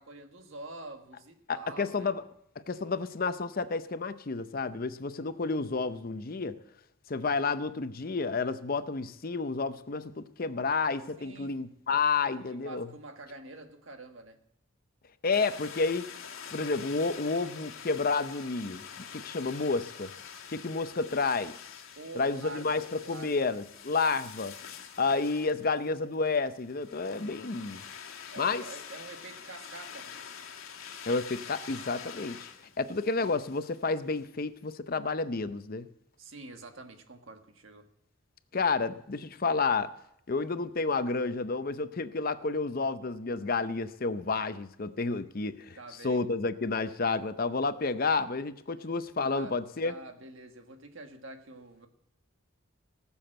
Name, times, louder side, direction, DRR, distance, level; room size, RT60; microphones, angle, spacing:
voice 1, 0.0-2.1 10.2-10.3 11.2-11.6 12.2-14.4 22.0-23.4 28.3-30.2 36.2-37.9 45.8-46.2 49.3-49.5 49.8-51.9, right 2 dB, 70° right, 6 dB, 1.6 m, -46 dB
voice 2, 1.5-2.2 2.7-6.6 7.1-12.9 15.2-16.1 16.5-20.1 20.5-21.6 22.2-24.5 25.0-27.8 28.4-28.6 31.1-32.5 32.8-35.9 38.5-39.9 40.3-45.8 46.0-49.9, left 4 dB, 45° left, 12 dB, 0.6 m, -30 dB
sound 1, 15.3-34.3, left 7 dB, 80° left, 1.6 m, -46 dB
18.5 x 7.1 x 7.7 m, 0.75 s
head